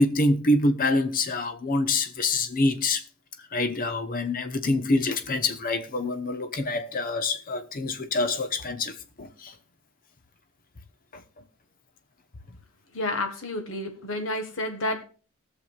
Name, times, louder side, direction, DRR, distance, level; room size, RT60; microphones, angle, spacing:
voice 1, 0.0-3.0 3.5-9.5 11.1-11.2, left 2 dB, 40° left, 0.9 m, -26 dB
voice 2, 12.9-15.0, left 2 dB, 60° left, 1.4 m, -30 dB
20.0 x 6.9 x 2.4 m
head